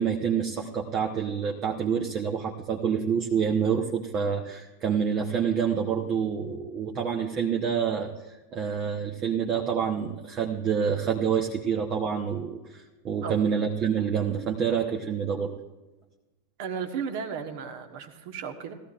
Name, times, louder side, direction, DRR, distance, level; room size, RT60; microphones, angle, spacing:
voice 1, 0.0-15.5, right 7 dB, 30° right, 1 dB, 1.1 m, -27 dB
voice 2, 16.6-18.7, right 6 dB, 50° right, 6 dB, 1.4 m, -34 dB
18.5 x 14.0 x 2.5 m, 1.1 s
figure-of-eight pair, 90°, 0 cm